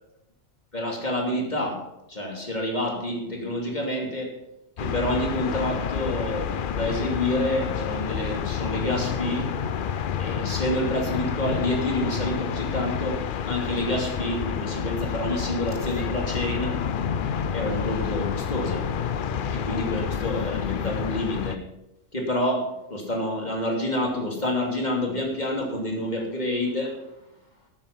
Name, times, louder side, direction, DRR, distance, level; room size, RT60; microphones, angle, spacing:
voice 1, 0.7-4.3 4.8-9.5 10.2-13.2 13.4-16.8 17.5-18.8 19.5-21.6 22.1-27.0, left 1 dB, 30° left, 0 dB, 2.9 m, -28 dB
sound 1, 4.8-21.6, left 7 dB, 55° left, 0.6 m, -29 dB
12.0 x 9.5 x 5.5 m, 0.88 s
omnidirectional pair, 1.4 m